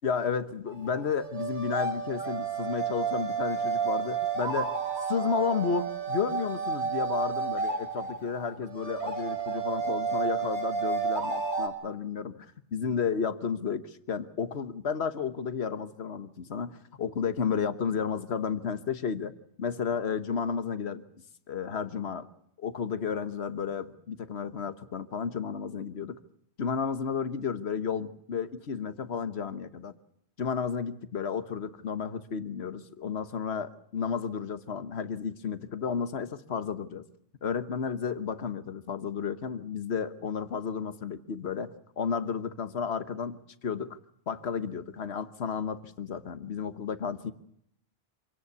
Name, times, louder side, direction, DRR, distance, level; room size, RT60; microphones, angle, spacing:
voice 1, 0.0-4.7 5.1-19.3 19.6-21.0 21.5-22.3 22.6-26.2 26.6-29.9 30.4-37.1 37.4-44.0 44.3-47.3, left 6 dB, 70° left, 12 dB, 1.5 m, -32 dB
sound 1, 0.7-11.7, right 5 dB, 75° right, 3.5 m, -31 dB
26.0 x 17.5 x 8.4 m, 0.74 s
omnidirectional pair, 1.1 m